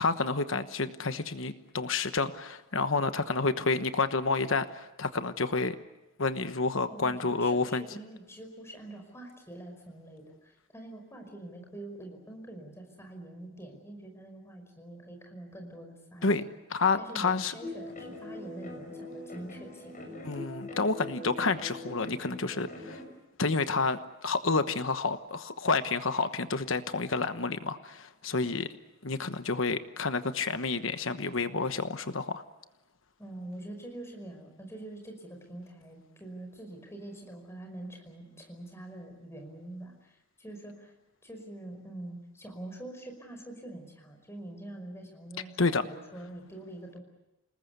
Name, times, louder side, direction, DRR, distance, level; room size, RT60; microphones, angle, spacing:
voice 1, 0.0-5.8 6.2-7.8 16.2-16.4 16.7-17.5 20.2-23.0 23.4-28.7 29.0-32.4 45.6-45.9, left 4 dB, 65° left, 10 dB, 1.2 m, -29 dB
voice 2, 6.8-16.5 16.9-19.9 33.2-40.9 41.2-47.0, right 1 dB, 10° left, 3 dB, 5.4 m, -45 dB
sound 1, 17.6-23.0, left 1 dB, 40° left, 6.4 m, -42 dB
28.5 x 20.0 x 8.2 m, 0.95 s
head